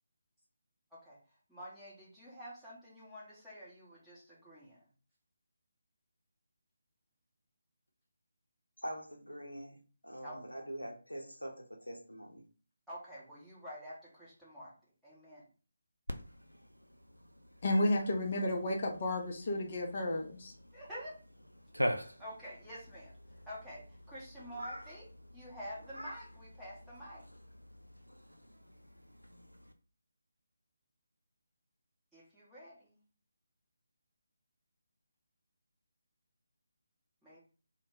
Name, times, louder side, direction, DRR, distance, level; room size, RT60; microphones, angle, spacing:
voice 1, 1.5-4.9 10.2-10.4 12.9-14.7 15.0-15.4 20.7-21.2 22.2-23.1 23.5-25.1 25.3-27.3 32.1-33.0 37.2-37.4, equal, ahead, 0.7 m, -48 dB
voice 2, 8.8-9.8 10.0-12.4, equal, 90° left, 0.5 m, -44 dB
Cat, 16.1-29.7, equal, 90° right, 0.3 m, -45 dB
voice 3, 17.6-20.5, left 1 dB, 40° left, 0.5 m, -32 dB
2.1 x 2.0 x 3.2 m
figure-of-eight pair, 150°, 0 cm